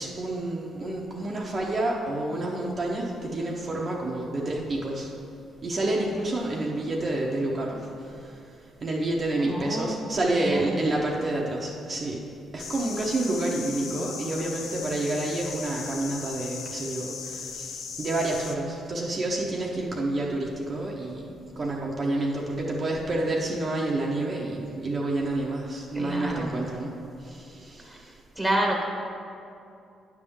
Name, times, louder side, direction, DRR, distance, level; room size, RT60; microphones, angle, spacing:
voice 1, 0.0-5.1 5.6-8.4 8.8-12.2 12.5-21.3 21.6-26.9 27.2-28.2, right 2 dB, 35° right, -3 dB, 0.9 m, -29 dB
voice 2, 9.4-10.7 25.9-26.5 27.9-28.0 28.4-28.8, right 1 dB, 5° right, 0 dB, 1.3 m, -29 dB
sound 1, 12.6-18.6, left 6 dB, 65° left, 0.6 m, -38 dB
9.2 x 3.6 x 7.0 m, 2.6 s
cardioid pair, 90°, 0 cm